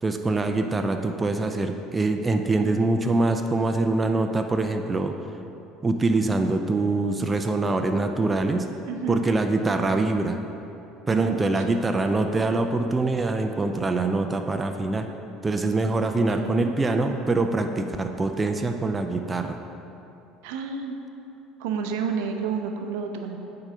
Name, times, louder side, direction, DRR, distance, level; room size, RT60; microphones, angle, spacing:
voice 1, 0.0-5.1 5.8-8.7 9.1-10.4 11.1-15.1 15.4-19.6, right 2 dB, 20° right, 5 dB, 0.5 m, -24 dB
voice 2, 8.8-9.2 11.1-11.8 16.4-16.7 20.4-21.0 21.6-23.4, right 6 dB, 65° right, 4 dB, 0.6 m, -30 dB
8.8 x 3.9 x 5.7 m, 2.9 s
figure-of-eight pair, 65°, 0 cm